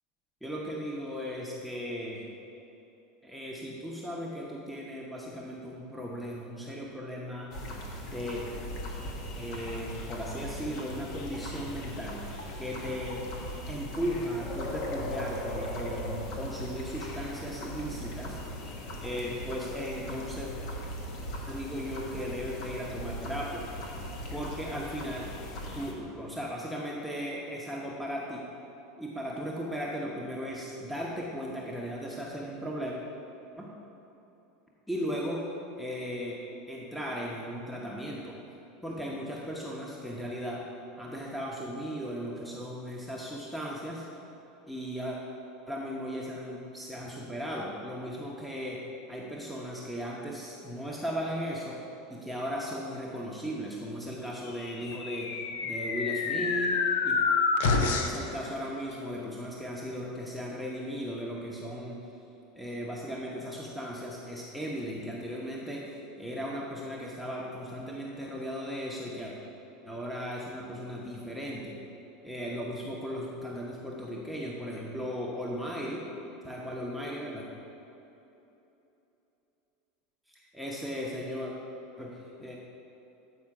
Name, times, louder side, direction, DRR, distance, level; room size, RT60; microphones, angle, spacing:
voice 1, 0.4-2.3 3.2-7.5 8.0-8.4 9.3-13.2 13.7-18.7 19.0-20.5 21.5-23.7 24.3-25.3 25.7-28.5 29.0-33.0 33.6-33.7 34.9-35.4 35.8-38.4 38.8-40.7 41.0-44.0 44.7-45.2 45.7-51.8 52.1-56.8 57.0-57.2 57.8-62.1 62.5-69.3 69.9-71.8 72.2-76.1 76.4-77.5 80.3-81.5 82.0-82.6, equal, ahead, -4 dB, 0.9 m, -37 dB
sound 1, 7.5-25.9, equal, 60° left, 1.1 m, -39 dB
sound 2, 54.7-58.3, left 4 dB, 75° left, 0.6 m, -28 dB
8.6 x 4.3 x 4.7 m, 3.0 s
hypercardioid pair, 95°, 0 cm